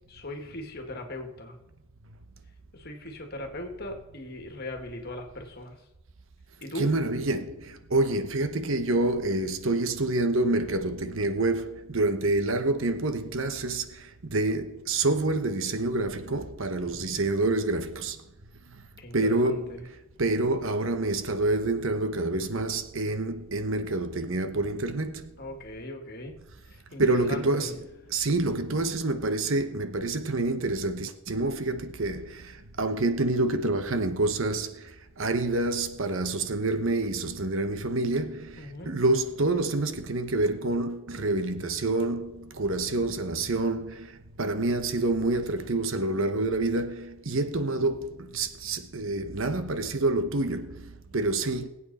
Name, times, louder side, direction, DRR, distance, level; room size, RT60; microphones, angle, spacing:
voice 1, 0.1-1.6 2.7-5.8 6.6-6.9 16.8-17.3 19.0-19.8 25.4-26.4 26.6-27.8 38.6-39.0, left 1 dB, 45° left, 2.1 m, -39 dB
voice 2, 6.8-18.2 18.7-18.8 19.1-19.9 20.2-25.3 27.0-27.8 28.1-51.7, right 2 dB, 60° right, 1.0 m, -27 dB
21.0 x 8.6 x 4.2 m
head